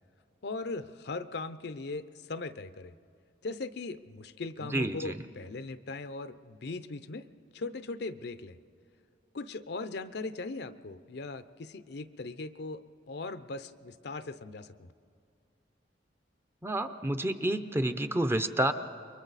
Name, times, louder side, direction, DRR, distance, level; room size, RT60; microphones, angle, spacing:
voice 1, 0.4-2.9 3.4-7.3 7.5-8.6 9.3-12.8 13.1-14.9, left 3 dB, 65° left, 12 dB, 0.6 m, -39 dB
voice 2, 4.7-5.1 16.6-18.7, right 1 dB, 15° right, 9 dB, 0.6 m, -29 dB
28.5 x 23.0 x 4.1 m, 2.4 s
head